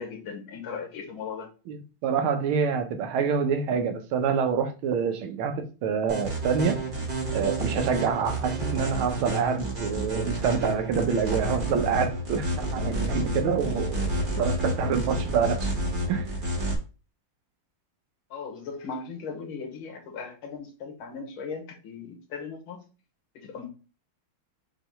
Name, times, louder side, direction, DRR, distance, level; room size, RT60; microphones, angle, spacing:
voice 1, 0.0-1.5 18.3-22.8 23.3-23.7, left 5 dB, 80° left, 2.0 m, -38 dB
voice 2, 2.0-6.8 7.3-14.0 14.3-15.7 16.1-16.3, right 6 dB, 90° right, 1.6 m, -26 dB
sound 1, 6.1-16.8, right 1 dB, 30° right, 1.3 m, -30 dB
5.8 x 3.1 x 3.0 m
omnidirectional pair, 2.2 m